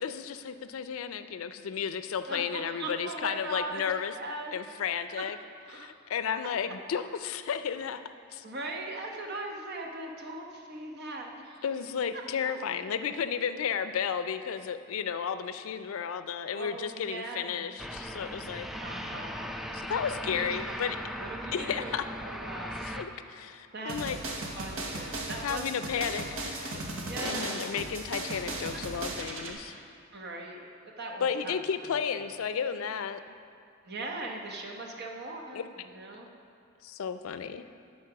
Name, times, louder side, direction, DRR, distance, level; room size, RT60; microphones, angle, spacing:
voice 1, 0.0-4.1 4.5-5.4 5.7-8.4 11.6-18.7 19.7-21.0 21.5-22.0 22.8-24.2 25.4-26.8 27.2-29.8 31.2-33.2 35.5-35.6 36.8-37.7, left 7 dB, 85° left, 11 dB, 0.4 m, -33 dB
voice 2, 2.3-4.5 5.2-5.3 5.7-5.9 6.7-6.8 8.4-11.6 12.1-12.2 16.5-17.8 18.8-19.6 20.3-20.8 21.2-22.9 23.7-24.2 24.5-25.7 26.0-26.3 27.0-27.8 28.7-28.8 30.1-30.7 31.0-31.6 31.9-32.0 33.8-36.3, right 2 dB, 55° right, 1 dB, 1.0 m, -40 dB
sound 1, 17.8-23.0, equal, ahead, 0.3 m, -38 dB
sound 2, 23.9-29.5, right 2 dB, 90° right, 1.1 m, -36 dB
11.0 x 4.2 x 5.9 m, 2.6 s
head